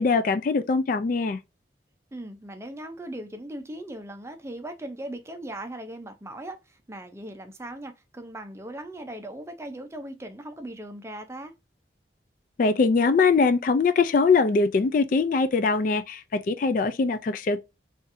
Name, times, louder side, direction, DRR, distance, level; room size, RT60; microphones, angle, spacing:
voice 1, 0.0-1.4 12.6-17.6, left 4 dB, 50° left, 0.3 m, -22 dB
voice 2, 2.1-11.5, right 1 dB, 15° right, 0.5 m, -39 dB
3.9 x 2.5 x 2.6 m
head